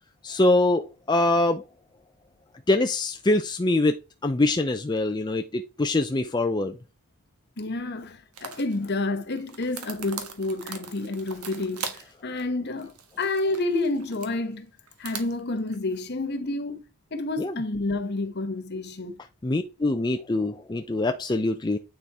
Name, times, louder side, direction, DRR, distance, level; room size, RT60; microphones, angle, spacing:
voice 1, 0.2-1.6 2.7-3.9 4.2-6.8 17.4-17.6 19.4-21.8, left 2 dB, 20° left, 0.4 m, -24 dB
voice 2, 7.6-14.7 15.0-16.8 17.1-19.2, left 2 dB, 50° left, 1.1 m, -29 dB
sound 1, 8.3-8.8 9.3-12.1 12.4-12.5 12.8-14.3 14.9-15.8, right 6 dB, 85° right, 1.5 m, -40 dB
9.3 x 4.3 x 4.7 m
head